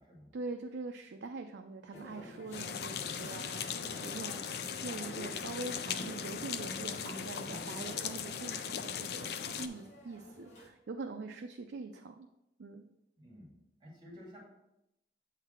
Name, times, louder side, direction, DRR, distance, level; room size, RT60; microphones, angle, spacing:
voice 1, 0.3-12.3 12.6-12.8, right 3 dB, 85° right, 5 dB, 0.4 m, -44 dB
sound 1, 1.9-10.7, left 1 dB, 40° left, 1.4 m, -49 dB
sound 2, 2.5-9.7, left 7 dB, 65° left, 0.4 m, -39 dB
voice 2, 13.2-13.5 13.8-14.4, equal, 25° right, -5 dB, 2.3 m, -52 dB
8.0 x 3.9 x 4.3 m, 0.88 s
head